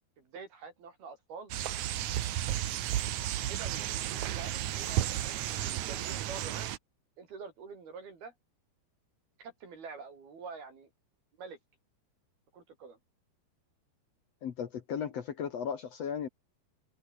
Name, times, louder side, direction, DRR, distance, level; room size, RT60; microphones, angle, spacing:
voice 1, 0.2-1.5 3.4-6.7 7.2-8.3 9.4-10.9 11.4-11.6 12.5-13.0, right 5 dB, 60° right, 6.3 m, -46 dB
sound 1, 1.5-6.8, right 13 dB, 85° right, 1.6 m, -33 dB
voice 2, 14.4-16.3, left 7 dB, 60° left, 1.6 m, -36 dB
omnidirectional pair, 5.1 m